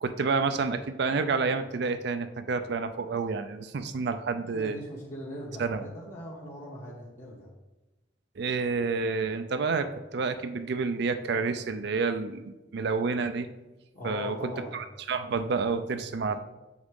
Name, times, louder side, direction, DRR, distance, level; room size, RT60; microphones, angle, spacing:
voice 1, 0.0-4.8 5.6-5.8 8.4-13.5 14.0-16.3, right 4 dB, 65° right, 8 dB, 0.5 m, -29 dB
voice 2, 4.5-7.5 13.9-14.8 16.3-16.4, left 1 dB, 45° left, -6 dB, 1.2 m, -40 dB
7.1 x 6.2 x 3.7 m, 1.1 s
head